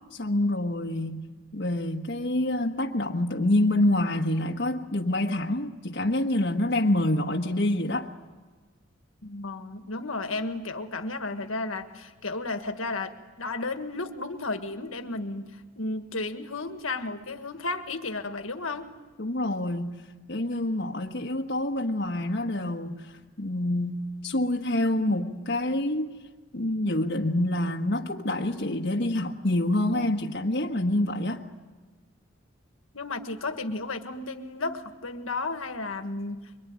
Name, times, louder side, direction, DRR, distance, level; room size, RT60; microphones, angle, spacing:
voice 1, 0.1-1.2 1.5-8.1 19.2-19.9 20.3-26.1 26.5-31.4, left 1 dB, 55° left, 1.4 m, -27 dB
voice 2, 9.2-18.9 32.9-36.6, left 3 dB, 75° left, 1.7 m, -33 dB
25.5 x 23.5 x 9.6 m
head